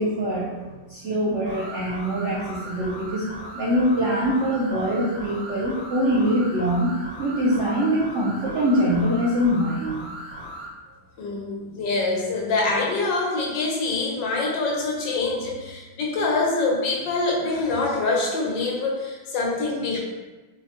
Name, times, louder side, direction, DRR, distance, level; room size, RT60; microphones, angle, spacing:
voice 1, 0.0-3.3 3.5-6.9 7.2-10.1, equal, 85° right, -6 dB, 0.6 m, -23 dB
sound 1, 1.4-10.7, equal, 50° left, 1.5 m, -38 dB
voice 2, 11.2-20.0, left 3 dB, 80° left, -2 dB, 1.4 m, -25 dB
4.2 x 2.1 x 2.8 m, 1.2 s
omnidirectional pair, 2.0 m